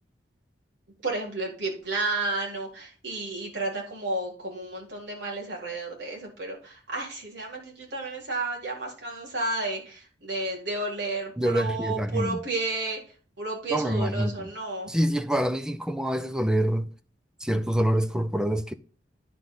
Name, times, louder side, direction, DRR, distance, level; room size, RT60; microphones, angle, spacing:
voice 1, 1.0-13.0 13.4-14.9, right 2 dB, 70° right, 4.2 m, -32 dB
voice 2, 11.4-12.4 13.7-14.5 14.9-16.9 17.4-18.7, equal, 5° right, 0.6 m, -26 dB
10.5 x 5.4 x 3.9 m
head